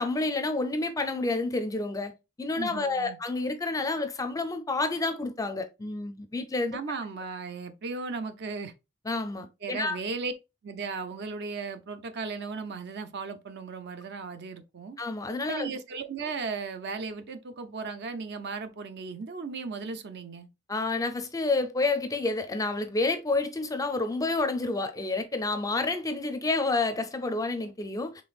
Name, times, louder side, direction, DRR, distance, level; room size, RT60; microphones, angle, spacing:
voice 1, 0.0-2.1 2.4-6.8 9.1-10.0 15.0-15.7 20.7-28.1, left 3 dB, 15° left, 0.5 m, -29 dB
voice 2, 2.6-3.2 6.7-8.7 9.6-10.3 10.6-15.0 15.5-20.5, right 4 dB, 50° right, 0.5 m, -36 dB
5.2 x 3.3 x 2.3 m
head